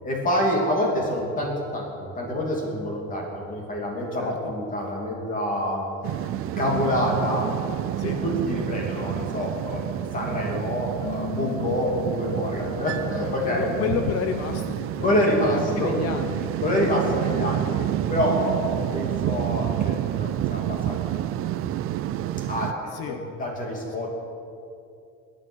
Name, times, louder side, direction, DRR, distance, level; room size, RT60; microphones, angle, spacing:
voice 1, 0.0-5.9 6.6-7.5 8.0-9.9 10.1-13.8 15.0-15.9 16.6-21.2 21.6-21.7 22.1-22.7 23.1-24.2, left 1 dB, 25° left, -1 dB, 2.9 m, -27 dB
voice 2, 4.2-4.5 8.0-8.2 13.4-15.1 15.4-16.5 22.9-23.2, left 8 dB, 55° left, 6 dB, 0.9 m, -30 dB
sound 1, 6.0-22.7, right 12 dB, 45° right, 0.5 m, -29 dB
Keyboard (musical), 11.0-13.0, left 4 dB, 85° left, 3.5 m, -38 dB
22.0 x 9.3 x 6.4 m, 2.5 s
cardioid pair, 170°, 30 cm